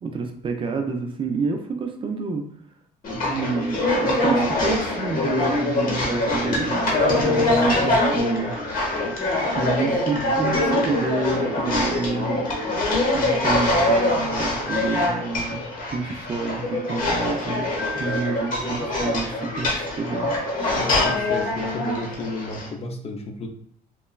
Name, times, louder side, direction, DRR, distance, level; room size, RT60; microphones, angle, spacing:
voice 1, 0.0-2.4 3.1-8.5 9.5-12.4 13.1-15.6 15.9-17.7 17.9-19.7 19.9-20.3, right 4 dB, 30° right, 4 dB, 0.4 m, -29 dB
sound 1, 3.0-22.7, left 1 dB, 55° left, 0.9 m, -23 dB
voice 2, 20.7-23.5, left 2 dB, 35° left, 3 dB, 0.4 m, -32 dB
2.9 x 2.2 x 2.3 m, 0.66 s
cardioid pair, 110°, 17 cm